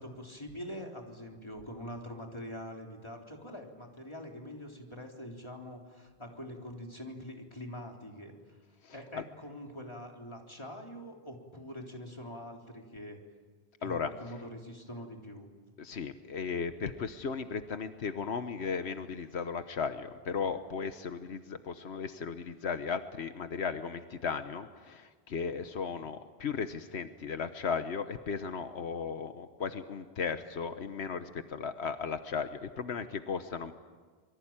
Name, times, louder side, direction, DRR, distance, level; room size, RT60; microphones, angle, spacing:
voice 1, 0.0-8.6 8.9-13.2 13.8-15.5, equal, 25° left, 1 dB, 3.7 m, -44 dB
voice 2, 8.8-9.2 13.8-14.1 15.8-33.7, left 5 dB, 85° left, 9 dB, 1.3 m, -36 dB
26.5 x 23.0 x 8.9 m, 1.5 s
omnidirectional pair, 1.1 m